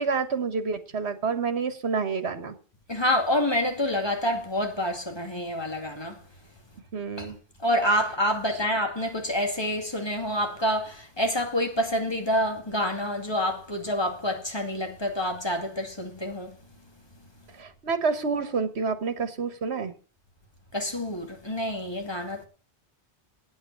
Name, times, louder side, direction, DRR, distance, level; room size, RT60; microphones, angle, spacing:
voice 1, 0.0-2.6 6.9-7.4 8.5-8.6 17.6-19.9, right 5 dB, 75° right, 1.7 m, -28 dB
voice 2, 2.9-6.2 7.2-7.3 7.6-16.5 20.7-22.5, equal, 25° left, 2.4 m, -27 dB
9.1 x 8.1 x 8.4 m
omnidirectional pair, 1.1 m